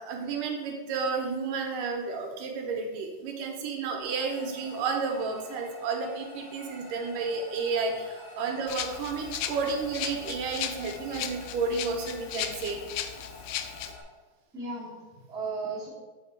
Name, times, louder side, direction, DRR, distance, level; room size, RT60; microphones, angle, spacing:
voice 1, 0.0-12.8, right 4 dB, 80° right, 2 dB, 2.4 m, -31 dB
sound 1, 4.0-14.0, left 1 dB, 50° left, 1.3 m, -48 dB
Rattle (instrument), 8.7-13.9, left 10 dB, 80° left, 2.1 m, -36 dB
voice 2, 14.5-15.9, right 3 dB, ahead, -8 dB, 1.6 m, -37 dB
8.0 x 4.3 x 4.6 m, 1.2 s
omnidirectional pair, 3.9 m